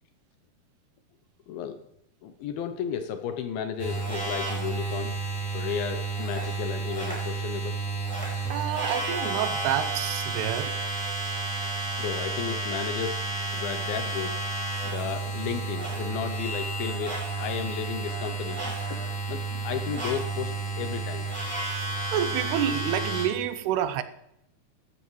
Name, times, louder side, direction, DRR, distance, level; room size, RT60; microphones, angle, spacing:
voice 1, 1.5-1.8 2.2-5.2 5.5-7.8 12.0-13.2 13.5-14.4 14.8-21.3, left 8 dB, 80° left, 2.3 m, -34 dB
sound 1, 3.8-23.2, right 3 dB, ahead, 4.7 m, -31 dB
voice 2, 8.5-10.7 22.1-24.0, right 10 dB, 85° right, 2.7 m, -28 dB
14.0 x 12.5 x 3.1 m
omnidirectional pair, 4.8 m